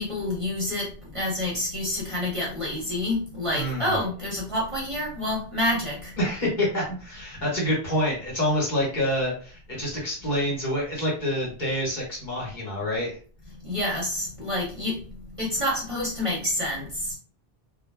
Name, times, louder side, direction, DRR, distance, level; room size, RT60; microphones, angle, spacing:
voice 1, 0.0-6.1 13.6-15.0 15.4-17.2, left 1 dB, 35° right, -4 dB, 0.7 m, -28 dB
voice 2, 3.5-4.0 6.2-13.2, left 1 dB, 50° left, -5 dB, 1.2 m, -27 dB
2.2 x 2.0 x 3.3 m, 0.42 s
omnidirectional pair, 1.0 m